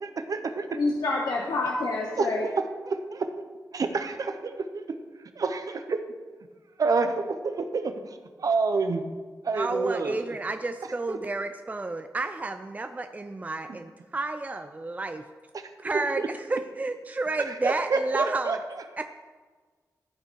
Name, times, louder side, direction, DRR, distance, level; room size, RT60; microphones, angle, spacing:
voice 1, 0.0-0.8 2.2-3.3 3.7-4.8 5.4-6.0 6.8-9.0 9.4-10.4 11.1-11.2 13.7-13.8 15.5-16.3 17.5-18.8, right 4 dB, 60° right, 7 dB, 0.9 m, -29 dB
voice 2, 0.7-2.4, left 3 dB, 80° left, -1 dB, 1.1 m, -27 dB
voice 3, 9.5-15.2 15.8-16.2 16.5-18.6 19.0-19.1, right 2 dB, 25° right, 7 dB, 0.5 m, -31 dB
13.5 x 5.5 x 4.6 m, 1.4 s
cardioid pair, 75°, 7 cm